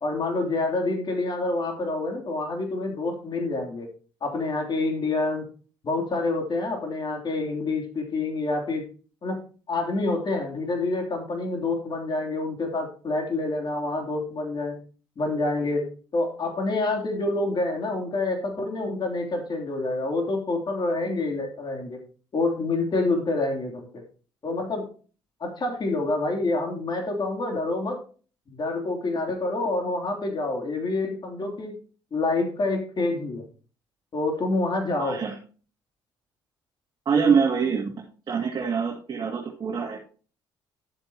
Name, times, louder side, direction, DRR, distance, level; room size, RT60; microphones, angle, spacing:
voice 1, 0.0-3.9 4.2-5.5 5.8-8.8 9.2-9.4 9.7-14.8 15.2-22.0 22.3-24.0 24.4-24.9 25.4-28.0 28.5-31.8 32.1-33.5 34.1-35.2, left 2 dB, 45° left, 2 dB, 3.1 m, -27 dB
voice 2, 35.0-35.3 37.1-37.9 38.3-40.0, right 6 dB, 45° right, -1 dB, 2.2 m, -24 dB
11.5 x 7.7 x 2.9 m, 0.39 s
supercardioid pair, 60°, 10 cm